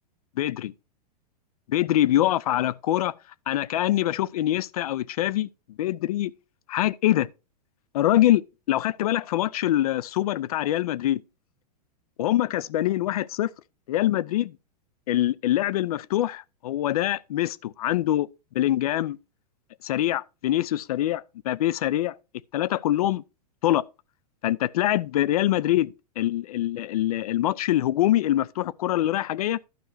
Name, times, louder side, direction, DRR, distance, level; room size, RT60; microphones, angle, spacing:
voice 1, 0.4-0.7 1.7-3.1 3.5-5.5 5.8-6.3 6.7-7.3 7.9-8.4 8.7-11.2 12.2-13.5 13.9-14.6 15.1-18.3 18.5-19.2 19.8-22.2 22.5-23.2 23.6-23.9 24.4-29.6, left 13 dB, 65° left, 0.6 m, -24 dB
12.0 x 5.5 x 4.7 m
hypercardioid pair, 105°, 21 cm